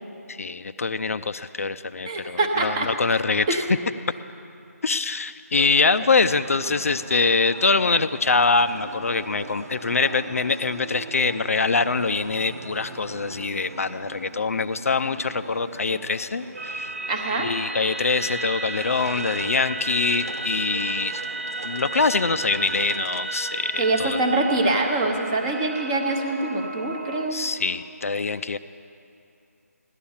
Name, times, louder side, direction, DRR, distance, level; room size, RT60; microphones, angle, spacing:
voice 1, 0.3-3.6 4.8-16.9 17.4-21.2 21.6-24.2 27.3-28.6, left 4 dB, 60° left, 11 dB, 0.5 m, -24 dB
voice 2, 2.1-2.9 3.5-3.7 17.1-17.5 23.8-27.4, right 2 dB, 15° right, 2 dB, 0.8 m, -24 dB
sound 1, 5.5-23.2, right 2 dB, 75° right, 1.4 m, -40 dB
sound 2, 16.6-27.3, right 2 dB, 50° right, 1.0 m, -33 dB
16.5 x 11.5 x 7.1 m, 2.6 s
figure-of-eight pair, 170°, 9 cm